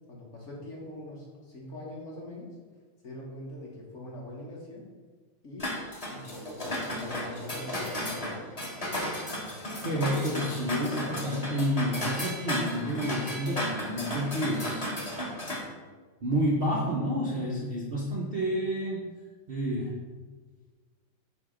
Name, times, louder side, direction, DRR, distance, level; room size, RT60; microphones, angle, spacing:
voice 1, 0.1-2.5 3.0-4.8 5.4-8.5, left 1 dB, 40° left, -3 dB, 1.2 m, -43 dB
sound 1, 5.6-15.6, left 1 dB, 25° left, 0.8 m, -34 dB
voice 2, 9.5-14.9 16.2-19.0 19.5-20.0, equal, 85° right, -5 dB, 0.5 m, -30 dB
8.6 x 3.0 x 5.0 m, 1.4 s
omnidirectional pair, 2.4 m